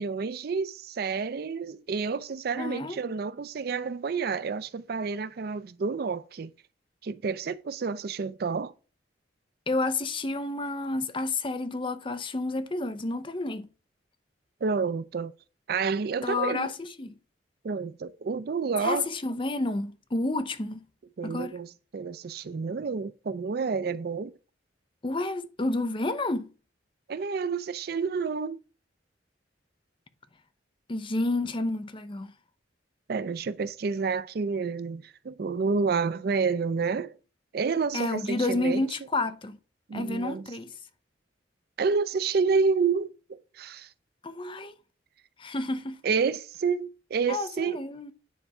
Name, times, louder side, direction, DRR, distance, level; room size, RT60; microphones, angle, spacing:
voice 1, 0.0-6.5 7.0-8.7 14.6-15.3 15.7-16.7 17.6-19.1 21.2-24.3 27.1-28.6 33.1-37.1 37.5-38.9 39.9-40.5 41.8-43.9 46.0-47.8, right 5 dB, 55° right, 0.4 m, -29 dB
voice 2, 2.6-3.0 9.7-13.7 16.2-17.1 18.8-20.8 21.2-21.5 25.0-26.5 30.9-32.3 37.9-39.6 39.9-40.7 44.2-44.7 45.4-46.0 47.3-48.1, left 2 dB, 25° left, 0.6 m, -30 dB
9.5 x 3.4 x 5.4 m
head